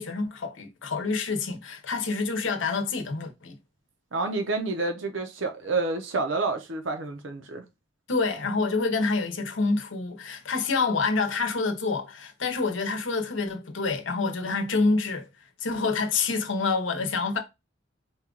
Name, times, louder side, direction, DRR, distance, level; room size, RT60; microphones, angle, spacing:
voice 1, 0.0-3.6 8.1-15.3 15.6-17.4, left 4 dB, 75° left, 0.8 m, -27 dB
voice 2, 4.1-7.6, right 3 dB, 75° right, 0.7 m, -29 dB
4.3 x 2.3 x 3.7 m
head